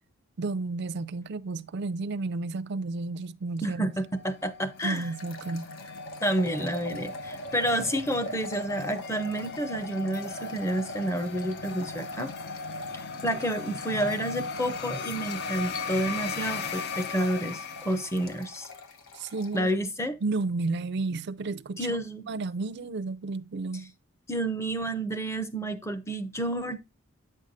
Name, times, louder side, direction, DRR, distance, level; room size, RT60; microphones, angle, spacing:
voice 1, 0.4-3.9 4.8-5.7 19.1-19.7 20.2-22.0 22.3-23.9, right 3 dB, 55° right, 0.4 m, -32 dB
voice 2, 3.6-5.1 6.2-12.3 12.9-18.7 19.5-20.2 21.8-22.3 24.3-26.8, right 1 dB, 15° left, 0.7 m, -30 dB
sound 1, 4.1-18.8, left 4 dB, 50° left, 0.5 m, -38 dB
sound 2, 4.8-19.6, equal, 80° left, 1.1 m, -44 dB
8.9 x 6.4 x 2.5 m
head